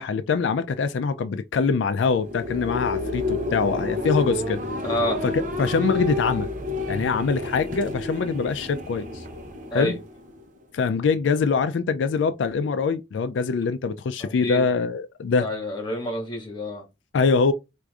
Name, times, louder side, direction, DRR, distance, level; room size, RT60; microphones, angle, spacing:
voice 1, 0.0-4.6 5.2-6.5 6.9-9.2 9.7-10.0 10.7-15.5 17.1-17.5, left 5 dB, 90° left, 0.4 m, -24 dB
sound 1, 2.1-10.6, left 2 dB, 45° right, 0.8 m, -30 dB
voice 2, 4.8-5.2 9.7-10.0 14.2-14.6 15.2-16.9, left 1 dB, 25° left, 1.5 m, -29 dB
4.6 x 2.6 x 2.4 m
head